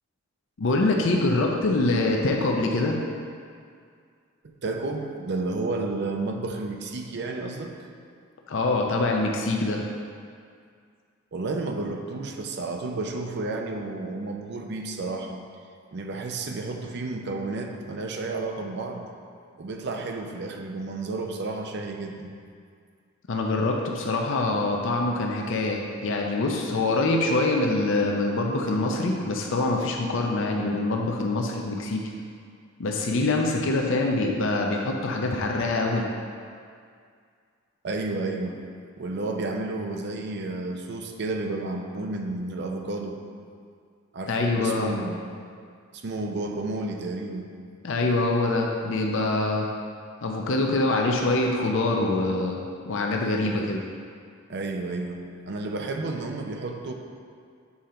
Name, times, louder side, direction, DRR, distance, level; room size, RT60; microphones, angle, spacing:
voice 1, 0.6-3.0 8.5-9.8 23.3-32.0 32.8-36.0 44.3-45.0 47.8-49.7 50.2-52.6 52.9-53.8, left 2 dB, 65° left, 1 dB, 0.6 m, -24 dB
voice 2, 4.4-7.7 11.3-15.4 15.9-19.1 19.6-22.3 37.8-38.6 39.0-43.2 44.1-45.2 45.9-47.5 54.5-56.9, right 3 dB, 55° right, 3 dB, 0.6 m, -31 dB
7.1 x 4.4 x 3.8 m, 2.2 s
head